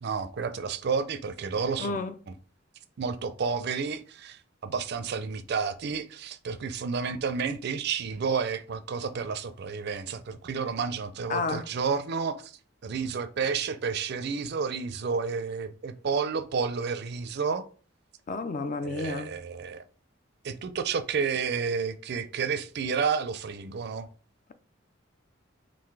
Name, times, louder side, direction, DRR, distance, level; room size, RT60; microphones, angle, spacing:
voice 1, 0.0-2.0 3.0-17.6 18.8-19.8 20.4-24.1, right 5 dB, 55° right, 0.4 m, -31 dB
voice 2, 1.8-2.2 7.0-7.1 11.3-11.7 18.3-19.3, left 3 dB, 40° left, 0.4 m, -31 dB
3.8 x 2.5 x 4.7 m
head